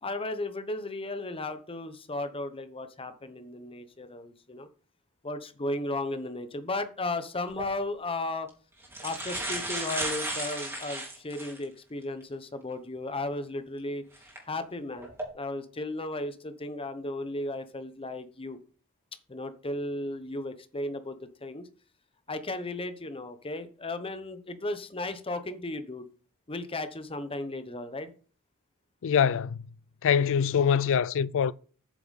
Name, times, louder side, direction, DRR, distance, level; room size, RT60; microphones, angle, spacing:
voice 1, 0.0-4.7 5.2-8.5 9.0-14.0 14.5-15.1 15.3-18.6 19.3-21.7 22.3-26.0 26.5-28.1, left 2 dB, 25° left, 0.9 m, -35 dB
sound 1, 7.5-7.7 8.5-8.6 8.8-11.6 12.2-12.3 14.2-14.4 15.0-15.2, right 1 dB, 10° right, 3.1 m, -34 dB
voice 2, 29.0-29.6 30.0-31.5, left 7 dB, 60° left, 0.4 m, -24 dB
8.4 x 6.8 x 4.1 m
head